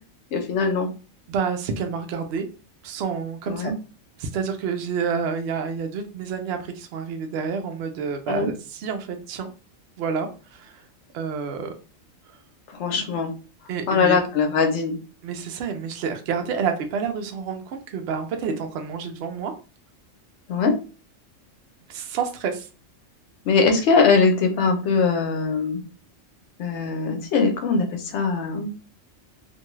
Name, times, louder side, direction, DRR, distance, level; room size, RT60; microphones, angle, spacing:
voice 1, 0.3-0.9 3.5-3.7 8.3-8.5 12.7-13.3 13.9-15.0 20.5-20.7 23.4-25.8 26.6-28.7, left 4 dB, 65° left, 4 dB, 0.9 m, -21 dB
voice 2, 1.3-2.5 2.8-3.7 4.2-9.5 10.0-10.8 11.1-11.7 13.7-14.2 15.2-19.5 21.9-22.7, right 6 dB, 65° right, 5 dB, 0.7 m, -29 dB
2.6 x 2.3 x 3.0 m, 0.34 s
omnidirectional pair, 1.4 m